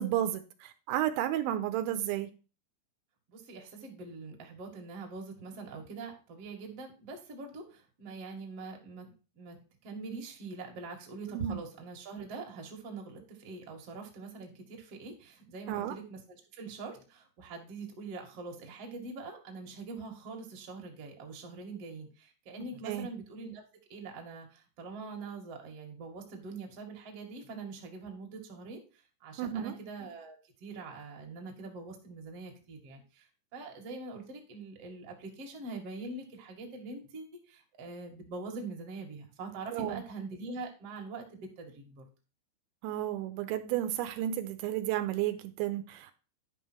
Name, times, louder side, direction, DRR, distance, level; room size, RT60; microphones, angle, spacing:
voice 1, 0.0-2.3 11.3-11.6 15.7-16.0 22.9-23.1 29.4-29.8 39.7-40.0 42.8-46.2, right 12 dB, 85° right, 2.9 m, -32 dB
voice 2, 3.3-9.6 9.8-23.6 23.9-42.0, right 3 dB, 45° right, 2.1 m, -44 dB
10.5 x 5.6 x 4.4 m
omnidirectional pair, 5.4 m